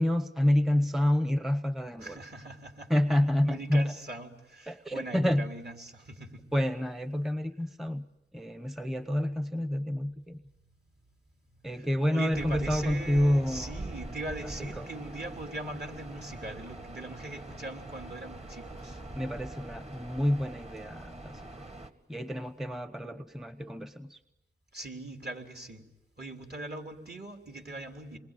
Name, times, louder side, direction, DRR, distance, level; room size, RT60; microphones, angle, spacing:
voice 1, 0.0-2.2 2.9-3.9 4.7-5.5 6.5-8.1 8.3-10.4 11.6-13.8 14.6-14.9 19.2-21.7 22.1-24.2, left 1 dB, ahead, 11 dB, 0.9 m, -28 dB
voice 2, 2.0-2.9 3.4-6.4 11.5-19.0 24.7-25.8 26.2-28.2, right 2 dB, 50° right, 3 dB, 3.6 m, -41 dB
sound 1, 12.3-21.9, right 2 dB, 30° right, 2.0 m, -43 dB
27.5 x 22.0 x 9.1 m, 0.94 s
wide cardioid pair, 60°, 21 cm